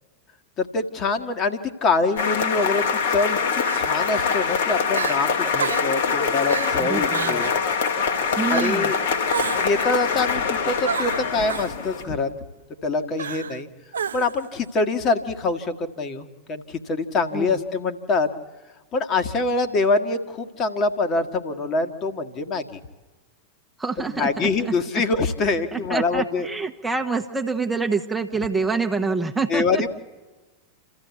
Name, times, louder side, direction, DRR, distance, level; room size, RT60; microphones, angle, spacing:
voice 1, 0.6-7.5 8.5-9.0 9.6-12.3 12.8-13.7 14.1-18.3 18.9-22.8 24.2-26.5 29.5-29.9, left 3 dB, 30° left, 6 dB, 1.8 m, -24 dB
Crying sobbing, 2.1-2.4 3.6-4.2 4.6-4.7 4.9-5.2 5.6-6.0 6.5-6.8 7.1-7.6 8.5-8.9 9.3-9.8 10.8-11.7 13.2-13.6 13.9-14.5, right 6 dB, 70° right, 0.7 m, -30 dB
sound 1, 2.2-12.0, left 5 dB, 60° left, 2.1 m, -24 dB
voice 2, 6.8-7.4 8.4-8.9 17.3-17.6 23.8-24.7 25.7-29.9, right 4 dB, 5° right, 3 dB, 1.2 m, -26 dB
29.0 x 14.0 x 8.4 m, 1.3 s
figure-of-eight pair, 90°, 0 cm